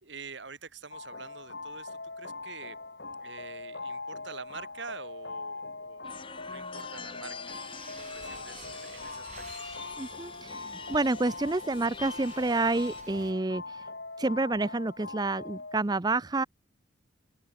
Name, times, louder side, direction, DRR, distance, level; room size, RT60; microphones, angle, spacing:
voice 1, 0.0-2.8 3.2-7.6 8.0-9.3 9.6-9.7, right 4 dB, 65° right, 2.4 m, -46 dB
sound 1, 0.9-15.8, left 3 dB, 60° left, 4.8 m, -42 dB
sound 2, 6.0-13.0, left 5 dB, 25° left, 1.9 m, -45 dB
sound 3, 7.5-13.3, right 4 dB, 40° right, 6.4 m, -52 dB
voice 2, 10.0-13.9 14.2-16.4, right 2 dB, 20° right, 0.5 m, -29 dB
open air
head